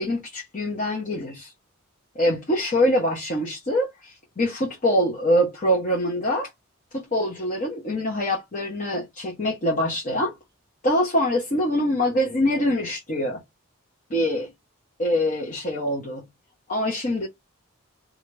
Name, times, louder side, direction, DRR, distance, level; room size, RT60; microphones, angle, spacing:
voice 1, 0.0-1.5 2.1-6.5 6.9-10.3 10.8-13.4 14.1-14.5 15.0-16.2 16.7-17.3, equal, 35° left, 0.9 m, -24 dB
2.8 x 2.4 x 3.2 m
head